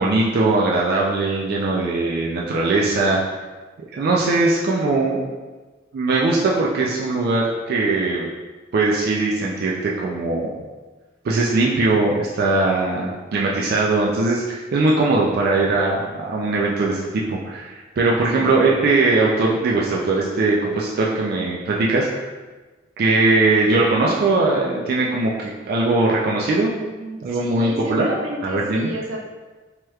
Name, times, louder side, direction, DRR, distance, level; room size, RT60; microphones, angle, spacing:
voice 1, 0.0-3.2 3.9-5.3 5.9-8.3 8.7-10.6 11.2-22.3 23.0-26.7 27.2-28.1 28.4-28.9, right 3 dB, 50° right, -3 dB, 0.3 m, -20 dB
voice 2, 26.7-29.2, equal, 90° right, -3 dB, 0.7 m, -32 dB
3.1 x 2.9 x 2.3 m, 1.3 s
head